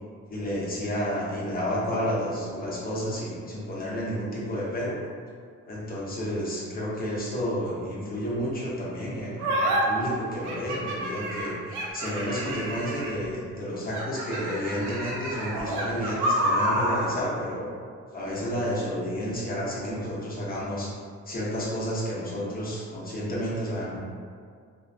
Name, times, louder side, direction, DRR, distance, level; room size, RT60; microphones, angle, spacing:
voice 1, 0.3-5.0 5.7-17.7 18.1-20.9 21.3-24.0, equal, 30° left, -6 dB, 0.7 m, -31 dB
sound 1, 9.4-9.8 10.4-13.3 13.9-17.1, right 1 dB, 75° right, 0.6 m, -28 dB
2.5 x 2.1 x 2.6 m, 2.1 s
cardioid pair, 90°, 30 cm